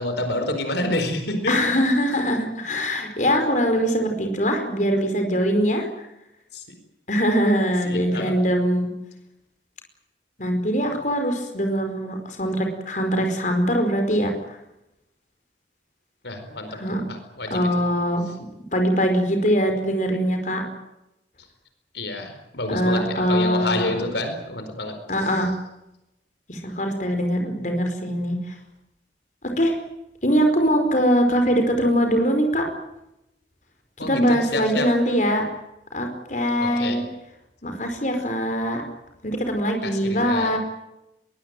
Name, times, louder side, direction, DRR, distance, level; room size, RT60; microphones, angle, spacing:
voice 1, 0.0-1.6 6.5-6.6 7.8-8.4 16.2-17.7 21.9-25.0 34.0-34.9 36.6-37.0 39.8-40.5, left 1 dB, 70° left, 7 dB, 4.6 m, -28 dB
voice 2, 1.5-5.9 7.1-8.9 10.4-14.6 16.7-17.0 17.5-18.2 18.7-20.6 22.7-23.9 25.1-25.5 26.5-28.5 29.6-29.8 30.2-32.7 34.0-35.4 35.9-37.0 37.6-38.8 39.2-40.6, equal, 45° left, 5 dB, 4.9 m, -22 dB
22.5 x 21.5 x 9.2 m, 0.89 s
head